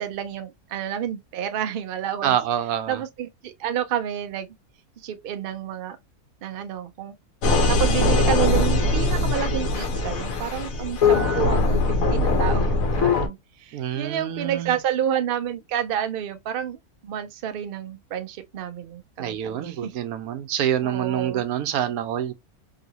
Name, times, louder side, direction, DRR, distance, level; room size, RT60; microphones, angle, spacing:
voice 1, 0.0-2.4 2.9-4.5 5.0-6.0 6.4-7.1 7.7-16.8 17.0-19.9 20.8-21.4, right 9 dB, 65° right, 0.5 m, -29 dB
voice 2, 2.2-3.0 13.7-14.8 19.2-22.3, right 10 dB, 80° right, 1.0 m, -26 dB
sound 1, 7.4-13.3, left 3 dB, 70° left, 1.2 m, -21 dB
3.0 x 2.8 x 2.7 m
omnidirectional pair, 1.5 m